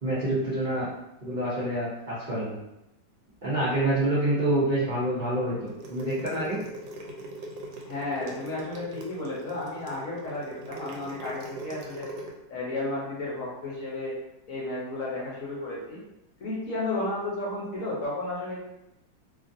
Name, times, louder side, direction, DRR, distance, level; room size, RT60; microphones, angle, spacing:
voice 1, 0.0-0.9 1.2-2.6 3.4-6.6, right 1 dB, 55° right, -10 dB, 0.5 m, -27 dB
sound 1, 5.7-12.3, right 2 dB, 75° right, 1.1 m, -41 dB
voice 2, 7.9-12.1 12.5-14.1 14.5-16.0 16.4-18.6, left 2 dB, 60° left, -6 dB, 1.0 m, -33 dB
2.9 x 2.5 x 2.6 m, 0.87 s
omnidirectional pair, 1.9 m